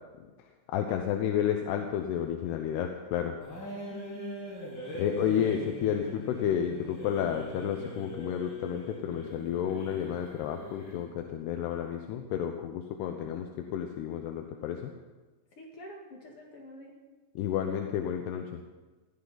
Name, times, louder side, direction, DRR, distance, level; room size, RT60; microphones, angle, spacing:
voice 1, 0.7-3.4 4.9-14.9 17.4-18.6, left 9 dB, 85° left, 4 dB, 3.0 m, -31 dB
sound 1, 3.4-11.1, equal, 25° left, 6.7 m, -42 dB
voice 2, 3.9-4.5 15.5-17.0, left 3 dB, 50° left, 0 dB, 1.9 m, -46 dB
21.0 x 15.0 x 4.0 m, 1.3 s
omnidirectional pair, 4.6 m